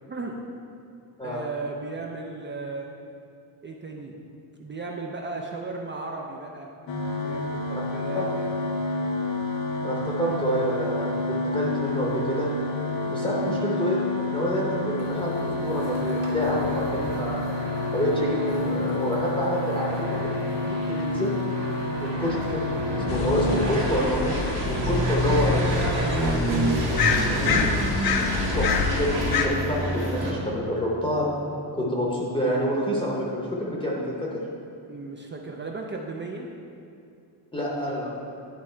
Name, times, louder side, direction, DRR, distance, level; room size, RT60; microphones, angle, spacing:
voice 1, 0.1-0.4 1.2-2.9 3.6-4.2 4.6-6.7 7.2-8.3 8.6-8.8 22.0-22.2 25.2-26.9 34.9-36.5, right 3 dB, 30° right, 0 dB, 0.3 m, -35 dB
sound 1, 6.9-23.7, left 2 dB, 80° left, 1.0 m, -29 dB
voice 2, 9.8-12.5 13.1-17.4 17.9-20.3 20.6-21.3 22.0-22.6 22.9-25.6 28.5-31.3 31.7-34.0 37.5-38.1, equal, 10° left, -4 dB, 0.7 m, -27 dB
sound 2, 15.0-30.3, right 1 dB, 90° right, 1.7 m, -29 dB
sound 3, 23.1-29.5, left 6 dB, 60° left, 0.6 m, -27 dB
10.5 x 3.6 x 4.3 m, 2.6 s
wide cardioid pair, 180°, 43 cm